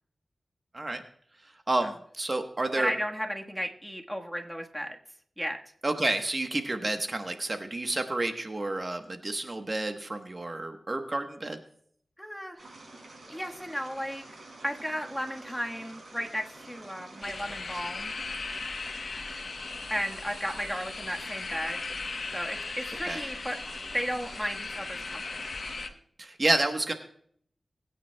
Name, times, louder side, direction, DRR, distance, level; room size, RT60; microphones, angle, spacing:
voice 1, 1.4-2.9 5.8-11.6 23.1-23.2 26.2-26.9, right 2 dB, 40° right, 6 dB, 1.1 m, -30 dB
voice 2, 2.7-5.0 5.4-5.6 12.2-12.7 13.3-14.2 14.6-18.1 19.9-21.8 22.3-23.6 23.9-25.5, equal, ahead, 2 dB, 1.4 m, -34 dB
sound 1, 12.6-25.8, right 2 dB, 70° right, 5.5 m, -48 dB
sound 2, 17.2-25.9, left 4 dB, 75° left, 1.0 m, -38 dB
21.5 x 9.2 x 2.3 m, 0.62 s
cardioid pair, 55°, 0 cm